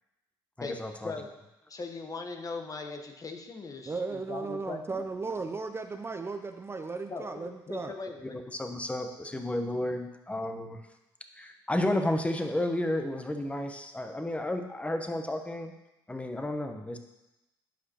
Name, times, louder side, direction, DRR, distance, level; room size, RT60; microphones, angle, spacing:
voice 1, 0.6-1.1 8.2-10.8 11.3-15.7 16.1-17.0, left 1 dB, 15° left, 6 dB, 1.0 m, -32 dB
voice 2, 1.7-5.0 7.1-8.4, left 3 dB, 35° left, 4 dB, 1.0 m, -39 dB
voice 3, 3.9-7.9, right 4 dB, 25° right, 7 dB, 0.5 m, -36 dB
11.5 x 5.0 x 2.9 m, 0.95 s
hypercardioid pair, 60°, 10 cm